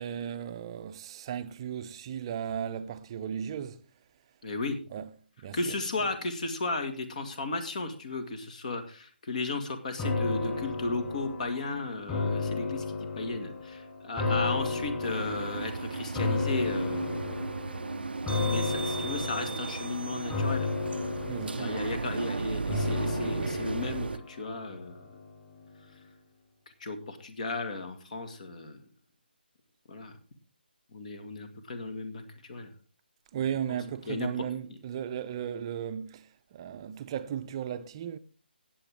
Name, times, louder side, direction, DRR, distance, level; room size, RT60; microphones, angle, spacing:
voice 1, 0.0-3.8 4.9-6.1 21.3-22.0 33.3-38.2, right 9 dB, 30° right, 0.7 m, -36 dB
voice 2, 4.4-4.8 5.5-17.4 18.3-20.7 21.6-25.1 26.8-28.8 29.9-30.2 30.9-32.7 33.7-33.8 34.1-34.3, left 3 dB, 45° left, 2.0 m, -35 dB
sound 1, 10.0-25.3 25.7-25.8, left 3 dB, 15° left, 3.8 m, -33 dB
sound 2, 15.0-24.2, right 4 dB, 70° right, 0.5 m, -35 dB
17.5 x 7.8 x 3.6 m
figure-of-eight pair, 150°, 6 cm